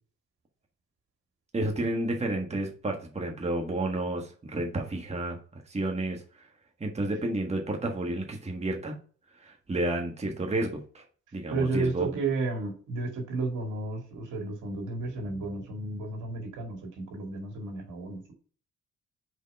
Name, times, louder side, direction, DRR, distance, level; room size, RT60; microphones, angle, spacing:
voice 1, 1.5-6.5 6.8-9.0 9.3-11.0 11.3-12.2, right 2 dB, 20° right, 2 dB, 1.4 m, -31 dB
voice 2, 11.5-18.3, right 3 dB, 80° right, 2 dB, 2.2 m, -32 dB
4.9 x 4.6 x 5.3 m, 0.42 s
cardioid pair, 90°, 30 cm